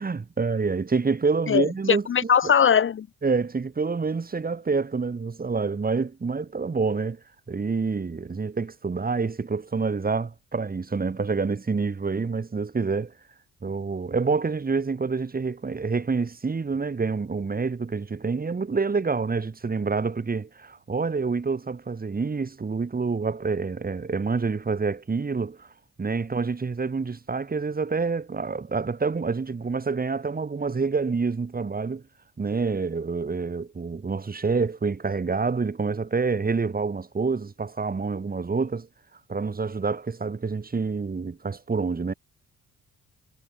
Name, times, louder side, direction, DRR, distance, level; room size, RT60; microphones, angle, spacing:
voice 1, 0.0-2.5 3.2-7.2 7.5-13.1 13.6-25.7 26.0-32.0 32.4-38.9 39.3-42.1, right 4 dB, 30° right, 4.6 m, -27 dB
voice 2, 1.5-3.1, left 7 dB, 40° left, 0.9 m, -21 dB
cardioid pair, 90°, 30 cm